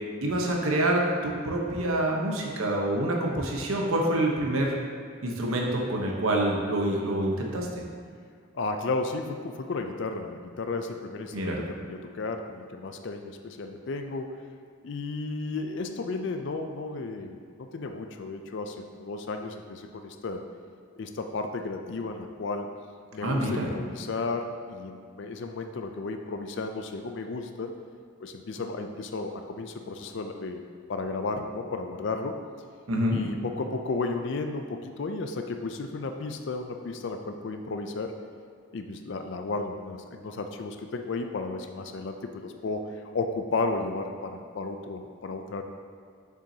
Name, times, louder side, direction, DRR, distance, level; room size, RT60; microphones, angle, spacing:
voice 1, 0.2-4.7 5.2-7.7 11.3-11.6 23.2-23.7 32.9-33.2, right 1 dB, 80° right, -1 dB, 1.0 m, -26 dB
voice 2, 8.5-14.4 14.8-20.4 21.0-22.7 23.1-27.7 28.2-30.6 30.9-32.3 33.1-38.1 38.7-42.9 43.1-45.6, left 3 dB, 55° left, 5 dB, 0.4 m, -33 dB
6.9 x 6.2 x 2.8 m, 2.1 s
head